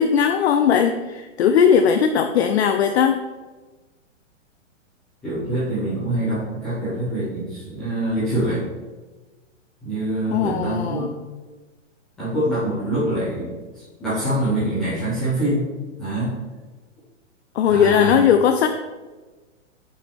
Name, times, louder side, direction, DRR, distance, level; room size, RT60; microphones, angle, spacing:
voice 1, 0.0-3.2 10.3-11.1 17.5-18.7, left 7 dB, 55° left, 6 dB, 0.6 m, -18 dB
voice 2, 5.2-8.6 9.8-11.1 12.2-15.7 16.0-16.3 17.7-18.2, right 1 dB, ahead, -17 dB, 0.3 m, -25 dB
9.5 x 5.4 x 3.4 m, 1.3 s
hypercardioid pair, 155°, 38 cm